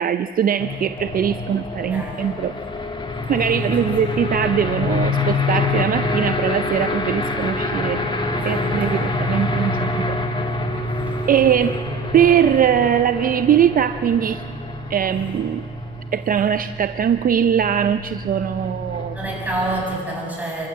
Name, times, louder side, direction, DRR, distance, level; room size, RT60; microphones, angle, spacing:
voice 1, 0.0-2.5 3.3-10.2 11.3-11.7 12.1-14.4 14.9-15.6 16.1-19.2, right 9 dB, 45° right, 11 dB, 0.5 m, -21 dB
sound 1, 0.6-20.0, left 2 dB, 25° left, 1.9 m, -26 dB
voice 2, 8.3-8.9 19.1-20.7, right 2 dB, 5° right, -3 dB, 7.5 m, -28 dB
26.0 x 15.0 x 7.5 m, 2.3 s
cardioid pair, 90°, 20 cm